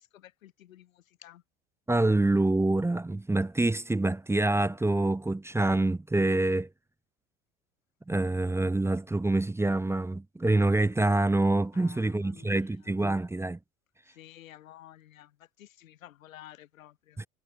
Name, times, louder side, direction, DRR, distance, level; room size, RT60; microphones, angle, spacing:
voice 1, 0.0-1.4 11.7-13.0 14.1-17.2, left 13 dB, 80° left, 2.0 m, -52 dB
voice 2, 1.9-6.7 8.1-13.6 17.2-17.3, right 2 dB, 5° right, 0.8 m, -26 dB
hypercardioid pair, 85°, 40 cm